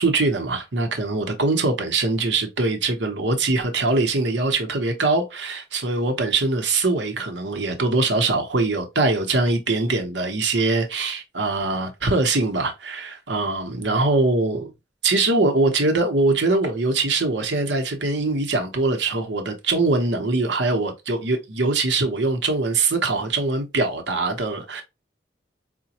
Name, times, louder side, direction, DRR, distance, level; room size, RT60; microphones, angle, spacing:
voice 1, 0.0-14.7 15.0-24.8, right 3 dB, 80° right, 0.9 m, -22 dB
4.9 x 2.2 x 2.8 m
head